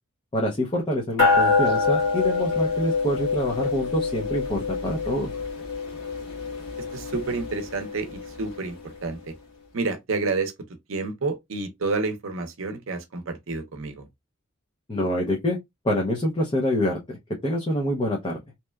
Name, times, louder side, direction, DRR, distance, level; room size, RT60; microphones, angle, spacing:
voice 1, 0.3-5.3 14.9-15.6 15.8-17.2 17.4-18.4, equal, 25° left, 0.5 m, -26 dB
sound 1, 1.2-8.9, left 4 dB, 60° left, 1.3 m, -26 dB
voice 2, 6.9-9.3 9.7-10.5 10.9-14.1, right 3 dB, 70° right, 0.6 m, -29 dB
2.9 x 2.2 x 2.2 m
head